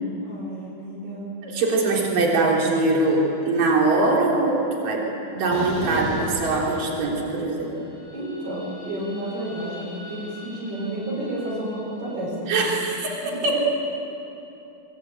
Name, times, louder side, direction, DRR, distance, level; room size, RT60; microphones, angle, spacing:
voice 1, 0.2-1.3 8.1-12.7 13.4-13.5, right 1 dB, 80° right, -5 dB, 8.3 m, -31 dB
voice 2, 1.4-5.0 5.3-7.7 12.5-13.6, right 3 dB, 60° right, -2 dB, 5.2 m, -22 dB
sound 1, 5.5-7.5 7.8-12.1, equal, 80° left, 7.5 m, -37 dB
23.5 x 22.5 x 9.0 m, 2.9 s
omnidirectional pair, 4.4 m